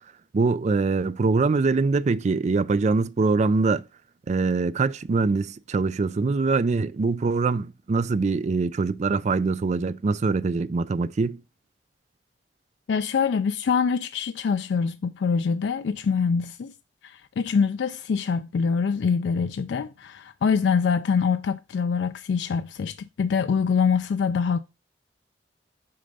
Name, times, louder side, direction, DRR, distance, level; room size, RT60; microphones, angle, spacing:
voice 1, 0.3-3.8 4.3-11.4, right 4 dB, 40° right, 0.4 m, -23 dB
voice 2, 12.9-16.7 17.0-24.6, left 6 dB, 70° left, 0.3 m, -24 dB
6.6 x 3.9 x 5.4 m
head